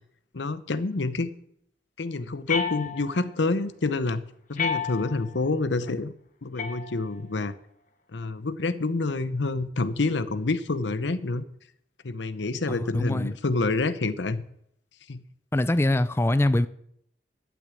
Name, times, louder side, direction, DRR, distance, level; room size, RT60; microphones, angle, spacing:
voice 1, 0.3-1.3 2.0-4.2 4.5-6.1 6.4-7.5 8.1-11.4 12.0-14.4 15.1-15.2, left 3 dB, 80° left, 0.8 m, -27 dB
sound 1, 2.5-3.4 4.6-5.4 6.6-7.4, left 6 dB, 45° left, 1.3 m, -31 dB
voice 2, 12.7-13.4 15.5-16.7, left 1 dB, 15° left, 0.4 m, -23 dB
12.0 x 6.2 x 8.4 m
head